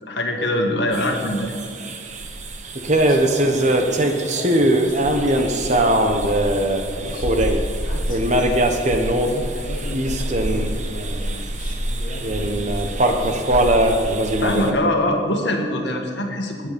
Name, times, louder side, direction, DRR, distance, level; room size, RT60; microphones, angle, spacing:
voice 1, 0.0-1.5 14.4-16.7, left 1 dB, 60° left, 2 dB, 1.9 m, -23 dB
sound 1, 0.9-14.7, right 1 dB, 40° right, 1.0 m, -21 dB
voice 2, 2.9-6.2 6.5-7.4 7.8-10.9 11.5-13.5, left 1 dB, 45° left, -3 dB, 1.5 m, -37 dB
21.0 x 9.5 x 5.2 m, 2.2 s
head